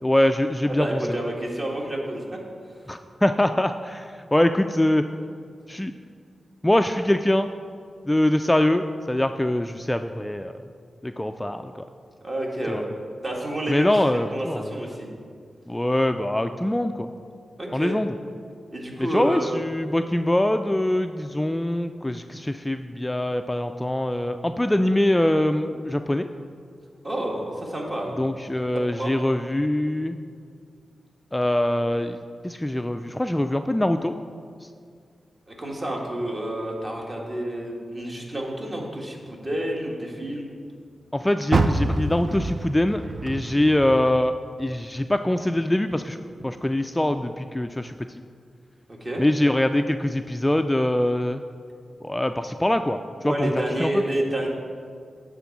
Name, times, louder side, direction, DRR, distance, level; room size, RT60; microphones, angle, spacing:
voice 1, 0.0-1.0 2.9-5.1 5.7-5.9 6.6-7.5 8.1-10.5 11.0-11.9 12.7-12.8 13.7-14.7 15.7-17.1 17.7-18.1 19.0-26.3 28.2-30.2 31.3-34.2 41.1-44.3 44.6-46.2 46.4-48.2 49.2-51.4 52.0-53.5 53.8-54.0, left 1 dB, 15° left, 8 dB, 0.3 m, -23 dB
voice 2, 0.7-2.4 12.2-12.9 13.2-15.1 17.6-18.0 18.7-19.5 27.0-28.1 28.7-29.1 35.5-40.4 48.9-49.2 53.2-54.5, right 1 dB, 35° right, -1 dB, 1.8 m, -29 dB
Car, 41.5-44.7 45.1-46.5 47.0-47.1 47.7-47.8, right 2 dB, 50° right, 0.5 m, -27 dB
9.7 x 3.7 x 7.2 m, 2.2 s
cardioid pair, 65°, 0 cm